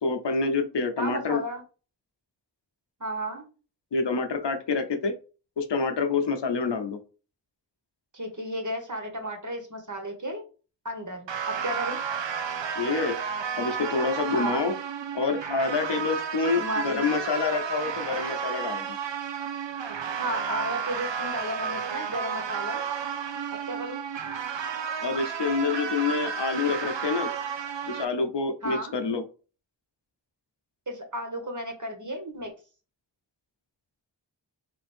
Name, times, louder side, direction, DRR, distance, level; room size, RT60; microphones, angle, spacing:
voice 1, 0.0-1.4 3.9-5.1 5.6-7.0 12.8-13.2 13.6-14.7 15.1-19.0 25.0-27.3 27.9-29.2, left 4 dB, 70° left, 7 dB, 0.8 m, -27 dB
voice 2, 1.0-1.6 3.0-3.4 8.1-10.4 10.8-12.0 14.3-14.6 16.6-17.1 20.2-22.9 23.6-24.0 28.6-28.9 30.9-32.5, right 1 dB, 40° right, 3 dB, 1.4 m, -33 dB
sound 1, 11.3-28.1, right 7 dB, 75° right, 0.6 m, -32 dB
3.6 x 2.6 x 4.3 m, 0.35 s
wide cardioid pair, 40°, 44 cm